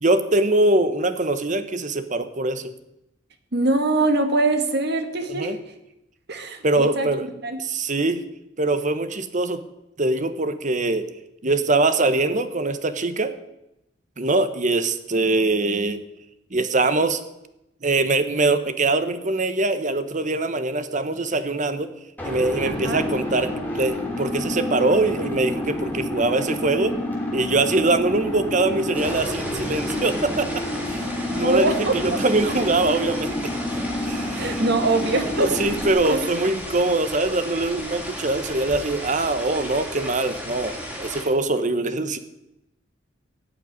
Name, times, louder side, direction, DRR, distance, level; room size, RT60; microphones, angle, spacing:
voice 1, 0.0-2.7 5.3-5.6 6.6-7.3 7.6-8.2 8.6-9.6 10.0-11.1 11.4-13.3 14.2-16.0 16.5-17.2 17.8-21.9 22.2-26.9 27.3-30.6 30.9-33.5 34.0-34.6 35.4-42.2, right 2 dB, 40° right, 11 dB, 1.1 m, -23 dB
voice 2, 3.5-5.6 6.3-7.1 7.4-7.6 22.6-23.1 31.4-32.2 34.3-35.5 36.0-36.3, right 2 dB, 60° right, 7 dB, 2.0 m, -23 dB
sound 1, 22.2-35.9, left 1 dB, 10° left, 3.3 m, -29 dB
sound 2, 28.9-41.2, equal, 5° right, 3.9 m, -35 dB
17.0 x 6.7 x 9.6 m, 0.89 s
head